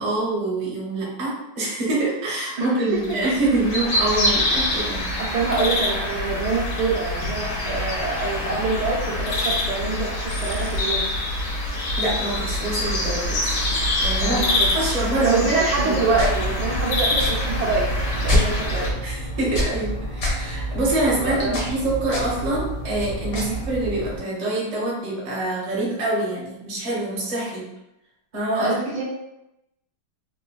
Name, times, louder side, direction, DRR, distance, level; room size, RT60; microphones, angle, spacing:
voice 1, 0.0-5.1 11.9-13.6 14.0-15.5 15.8-16.0 19.0-27.6 28.3-28.8, right 2 dB, 35° right, -6 dB, 0.6 m, -25 dB
voice 2, 2.6-3.2 5.2-11.1 14.2-14.7 15.2-18.9 21.2-21.7 23.3-23.6 28.6-29.0, right 3 dB, 70° right, -7 dB, 1.1 m, -25 dB
sound 1, 3.0-18.9, left 1 dB, 70° left, 1.2 m, -25 dB
sound 2, 16.1-24.2, equal, 50° left, 0.9 m, -27 dB
3.8 x 2.1 x 2.3 m, 0.90 s
omnidirectional pair, 2.2 m